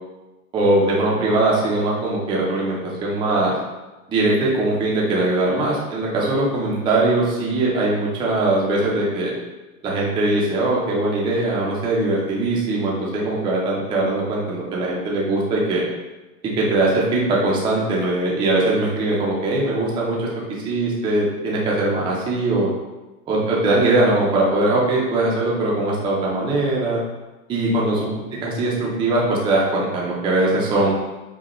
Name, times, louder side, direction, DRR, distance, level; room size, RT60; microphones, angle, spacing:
voice 1, 0.5-3.5 4.1-9.3 9.8-15.8 16.4-20.3 20.6-22.7 23.3-27.0 27.5-28.1 28.4-30.9, right 2 dB, 10° right, -4 dB, 0.4 m, -21 dB
5.0 x 2.2 x 3.0 m, 1.1 s
supercardioid pair, 140°, 42 cm